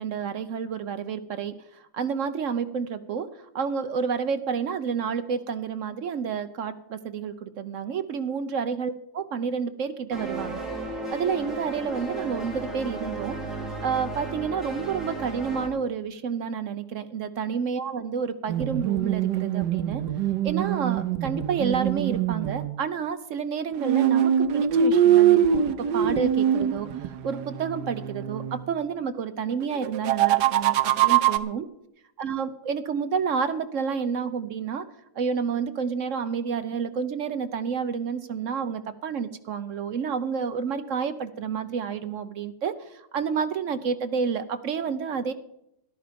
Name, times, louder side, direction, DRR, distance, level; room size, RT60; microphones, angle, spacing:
voice 1, 0.0-3.3 3.5-10.6 11.1-13.4 13.8-20.0 20.4-26.9 27.2-31.6 32.2-34.9 35.2-45.3, right 6 dB, 60° right, 11 dB, 0.8 m, -29 dB
sound 1, 10.1-15.7, right 2 dB, ahead, 3.2 m, -34 dB
sound 2, 18.5-22.8 23.8-28.6 29.8-31.4, right 9 dB, 80° right, 1.3 m, -23 dB
13.5 x 11.5 x 5.1 m, 0.82 s
omnidirectional pair, 1.8 m